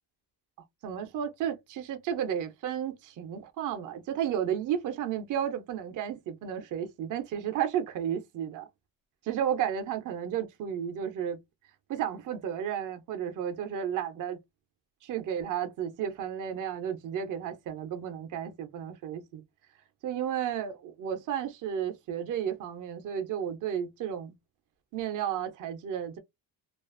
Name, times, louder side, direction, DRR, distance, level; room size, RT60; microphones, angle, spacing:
voice 1, 0.8-8.7 9.2-11.4 11.9-14.4 15.0-19.4 20.0-24.3 24.9-26.2, right 9 dB, 45° right, 0.5 m, -33 dB
2.4 x 2.4 x 2.4 m
cardioid pair, 160°, 45 cm